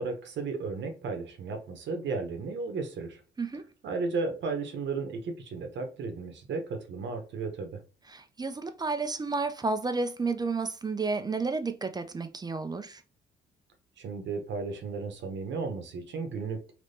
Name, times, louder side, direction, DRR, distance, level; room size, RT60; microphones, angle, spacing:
voice 1, 0.0-3.2 3.8-7.8 14.0-16.7, right 4 dB, 65° right, 0.9 m, -34 dB
voice 2, 8.1-13.0, right 3 dB, 20° right, 0.4 m, -31 dB
3.4 x 3.0 x 2.7 m
cardioid pair, 90°, 20 cm